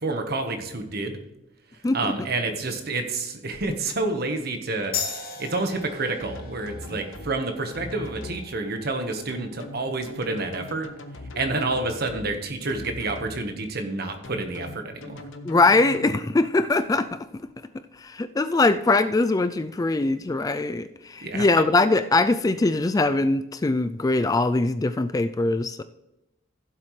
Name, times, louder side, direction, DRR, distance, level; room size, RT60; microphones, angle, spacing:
voice 1, 0.0-1.2 1.9-10.9 11.3-15.3 21.2-21.6, right 2 dB, 55° right, 5 dB, 1.3 m, -29 dB
sound 1, 4.9-12.0, left 6 dB, 50° left, 1.5 m, -39 dB
sound 2, 6.2-7.3 7.7-8.4 9.3-12.3 12.7-13.3 14.2-16.1, left 1 dB, 85° left, 1.1 m, -40 dB
voice 2, 15.4-17.2 18.0-25.8, left 2 dB, 20° left, 11 dB, 0.3 m, -22 dB
15.5 x 7.5 x 3.2 m, 0.93 s
head